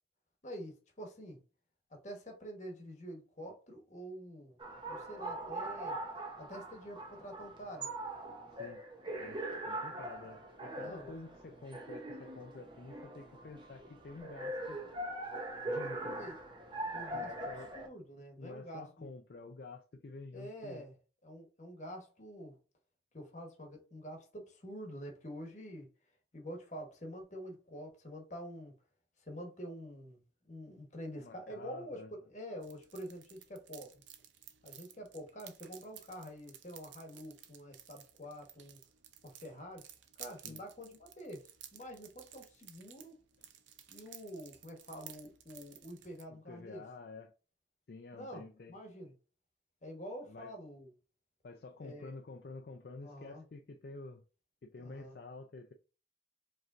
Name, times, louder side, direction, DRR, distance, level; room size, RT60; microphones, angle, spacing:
voice 1, 0.4-1.4 1.9-4.6 4.9-6.0 6.4-7.9 10.8-11.1 16.1-16.3 16.9-19.1 20.3-20.9 21.2-22.6 23.1-25.9 26.3-28.7 29.2-30.2 30.5-32.0 32.3-34.0 34.6-38.8 39.2-39.8 40.2-43.2 43.9-46.8 48.1-49.1 49.8-50.9 51.8-52.1 53.0-53.4 54.8-55.2, equal, 40° left, 1.1 m, -47 dB
sound 1, 4.6-17.9, right 1 dB, 25° right, 0.8 m, -42 dB
voice 2, 9.2-14.8 15.7-16.3 17.1-17.7 18.4-20.8 31.2-32.1 40.4-40.6 46.3-47.3 47.9-48.8 50.3-50.5 51.4-54.2 54.6-55.7, left 3 dB, 55° left, 0.4 m, -49 dB
sound 2, 32.6-46.2, right 10 dB, 90° right, 0.6 m, -55 dB
5.0 x 3.1 x 2.5 m
head